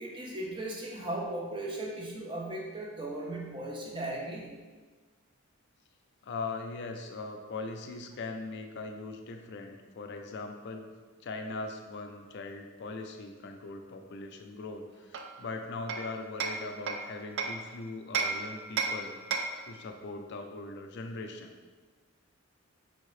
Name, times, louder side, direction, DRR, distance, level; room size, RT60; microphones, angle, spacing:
voice 1, 0.0-4.6, right 1 dB, 25° right, -2 dB, 0.7 m, -37 dB
voice 2, 6.2-10.9 11.2-21.5, left 3 dB, 55° left, 4 dB, 0.4 m, -40 dB
Hammer, 15.1-17.7 18.1-19.7, right 4 dB, 55° right, 0.4 m, -34 dB
5.5 x 2.7 x 3.1 m, 1.4 s
head